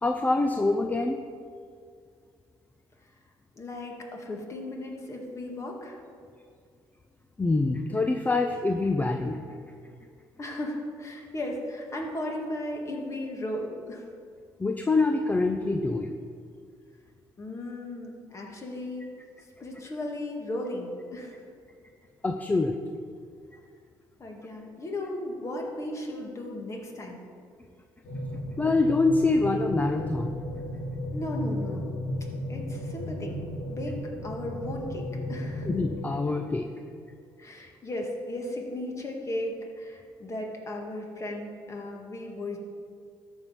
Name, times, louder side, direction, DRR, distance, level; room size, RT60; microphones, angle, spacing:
voice 1, 0.0-1.2 7.4-9.4 14.6-16.2 22.2-22.8 28.6-30.4 35.7-36.7, left 3 dB, 20° left, 5 dB, 0.6 m, -25 dB
voice 2, 3.5-6.0 10.4-14.1 17.4-19.1 19.6-21.3 24.2-27.2 31.1-31.9 32.5-34.0 34.2-35.7 37.4-42.6, left 1 dB, 35° left, 0 dB, 2.0 m, -36 dB
sound 1, 28.0-35.9, left 1 dB, 70° left, 2.1 m, -34 dB
13.0 x 5.4 x 5.8 m, 2.2 s
cardioid pair, 95°, 9 cm